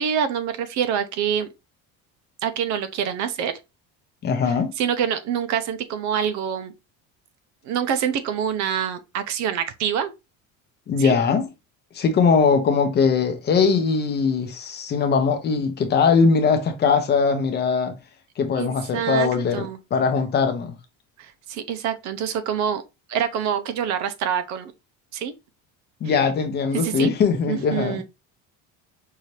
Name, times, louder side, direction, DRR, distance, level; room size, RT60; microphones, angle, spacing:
voice 1, 0.0-1.5 2.4-3.5 4.4-6.7 7.6-10.1 11.0-11.2 18.6-19.8 21.2-22.8 23.1-24.7 25.1-25.3 26.0-26.2 26.7-27.1 27.5-28.0, right 8 dB, 50° right, 0.6 m, -26 dB
voice 2, 4.2-4.7 10.9-11.5 11.9-18.0 18.4-20.7 26.0-28.0, left 5 dB, 30° left, 0.7 m, -21 dB
5.6 x 2.7 x 3.1 m
cardioid pair, 175°, 35 cm